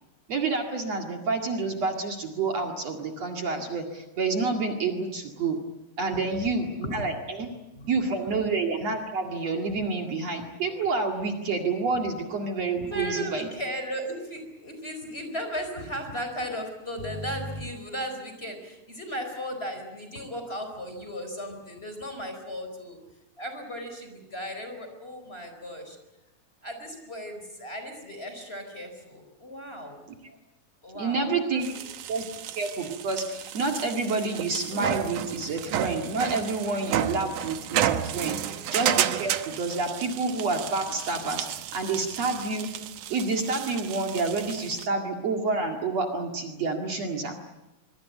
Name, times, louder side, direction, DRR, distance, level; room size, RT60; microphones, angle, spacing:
voice 1, 0.3-5.6 6.0-7.5 7.9-13.5 30.9-31.7 32.1-32.2 32.5-41.5 41.7-42.7 43.1-47.4, right 3 dB, 55° right, 3 dB, 3.1 m, -28 dB
voice 2, 12.7-23.0 23.4-26.0 26.6-30.0 30.8-31.8 32.2-32.3 38.4-38.6, equal, 15° left, 6 dB, 4.6 m, -36 dB
sound 1, 31.6-44.9, right 11 dB, 75° right, 2.5 m, -32 dB
25.5 x 23.5 x 8.3 m, 0.98 s
omnidirectional pair, 3.8 m